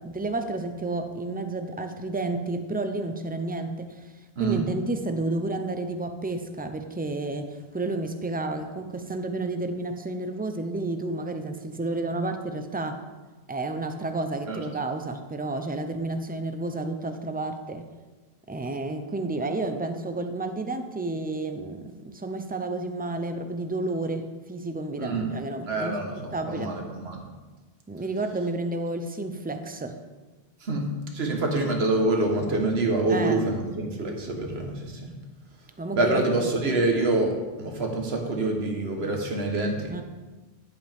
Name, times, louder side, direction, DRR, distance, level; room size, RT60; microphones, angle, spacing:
voice 1, 0.0-4.1 4.4-13.0 13.5-17.9 18.5-26.7 27.9-30.0 33.1-33.4 35.8-36.2 39.9-40.0, right 2 dB, 10° right, 7 dB, 0.4 m, -31 dB
voice 2, 25.7-27.2 30.6-30.9 31.1-35.1 35.9-40.0, right 2 dB, 80° right, 2 dB, 1.6 m, -26 dB
10.5 x 7.9 x 3.5 m, 1.2 s
omnidirectional pair, 1.0 m